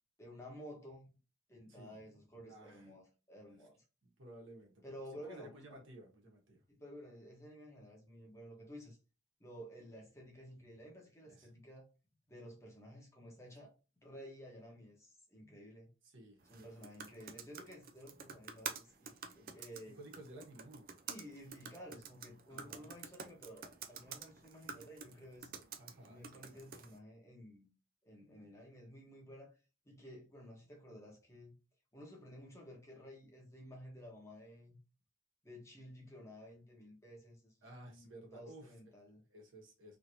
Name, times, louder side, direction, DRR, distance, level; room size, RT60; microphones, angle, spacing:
voice 1, 0.2-1.1 1.5-3.8 4.8-5.8 6.7-9.0 9.4-11.9 12.3-13.7 14.0-15.9 16.5-20.0 21.1-25.5 26.0-27.7 28.0-29.5 29.8-31.5 31.9-34.8 35.4-39.2, equal, 15° left, 1.0 m, -53 dB
voice 2, 2.5-2.9 4.0-4.7 5.2-6.6 11.2-11.5 16.0-16.7 20.0-20.9 22.5-22.9 25.8-26.6 37.6-38.7 39.3-40.0, right 1 dB, 90° right, 1.2 m, -55 dB
sound 1, 16.4-27.0, right 6 dB, 50° right, 0.4 m, -50 dB
3.1 x 2.8 x 2.6 m
head